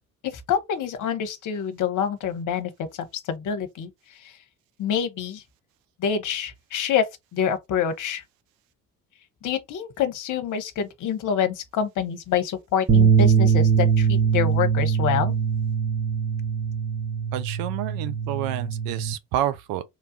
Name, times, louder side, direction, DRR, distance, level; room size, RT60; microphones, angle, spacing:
voice 1, 0.2-2.7 3.1-3.9 4.8-5.4 6.0-7.0 7.3-8.2 9.4-15.3, left 8 dB, 50° left, 0.8 m, -26 dB
sound 1, 12.9-19.1, right 6 dB, 25° right, 0.9 m, -22 dB
voice 2, 17.3-19.8, right 12 dB, 65° right, 0.5 m, -29 dB
3.1 x 2.3 x 2.6 m
hypercardioid pair, 50°, 39 cm